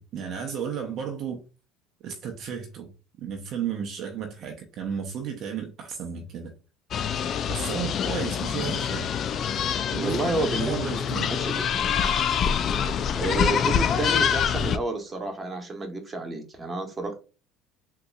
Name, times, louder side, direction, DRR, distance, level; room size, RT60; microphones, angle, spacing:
voice 1, 0.0-1.4 2.0-2.9 3.2-6.5 7.5-9.2 9.9-11.4, right 7 dB, 55° right, 0.7 m, -33 dB
sound 1, 6.9-14.8, left 8 dB, 45° left, 0.3 m, -25 dB
voice 2, 10.0-11.9 13.2-17.2, right 2 dB, 25° right, 1.1 m, -30 dB
3.8 x 2.7 x 2.3 m
hypercardioid pair, 80°, 0 cm